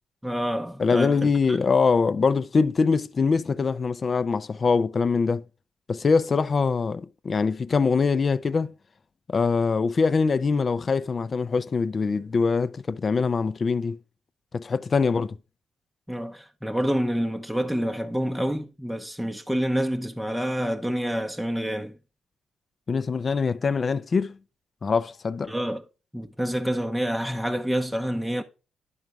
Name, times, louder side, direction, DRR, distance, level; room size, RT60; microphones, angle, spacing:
voice 1, 0.2-1.6 16.1-22.0 25.5-25.8 26.1-28.4, equal, ahead, 0.7 m, -28 dB
voice 2, 0.8-5.4 5.9-8.7 9.3-14.0 14.5-15.4 22.9-24.4 24.8-25.5, left 4 dB, 35° left, 0.5 m, -23 dB
11.0 x 3.9 x 4.6 m
cardioid pair, 90°, 0 cm